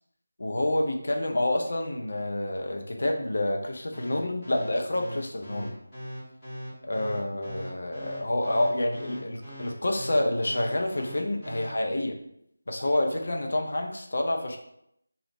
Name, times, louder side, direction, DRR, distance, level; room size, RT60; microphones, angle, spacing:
voice 1, 0.4-5.7 6.8-12.2 12.7-14.6, left 1 dB, 50° left, 2 dB, 0.5 m, -28 dB
sound 1, 3.9-11.7, equal, 15° left, 1.3 m, -40 dB
3.2 x 2.3 x 3.1 m, 0.74 s
figure-of-eight pair, 165°, 0 cm